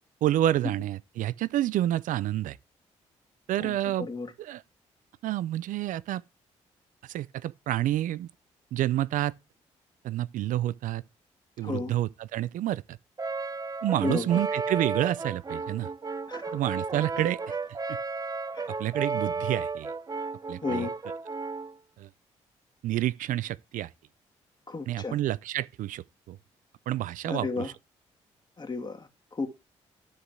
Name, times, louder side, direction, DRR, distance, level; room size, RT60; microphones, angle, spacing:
voice 1, 0.2-2.6 3.5-4.1 4.4-4.6 5.2-6.2 7.0-8.3 8.7-9.3 10.0-11.0 11.6-13.0 13.8-15.9 16.5-17.4 17.9-18.0 18.8-19.9 20.5-20.9 22.0-22.1 22.8-23.9 24.9-26.4 26.9-27.7, right 13 dB, 70° right, 0.5 m, -29 dB
voice 2, 3.6-4.3 11.6-11.9 14.0-14.3 16.3-16.6 18.5-18.7 20.6-20.9 24.7-25.2 27.3-27.7 28.6-29.5, left 4 dB, 30° left, 2.5 m, -33 dB
Brass instrument, 13.2-21.7, right 4 dB, 25° right, 0.6 m, -33 dB
12.5 x 4.9 x 3.3 m
supercardioid pair, 55°, 14 cm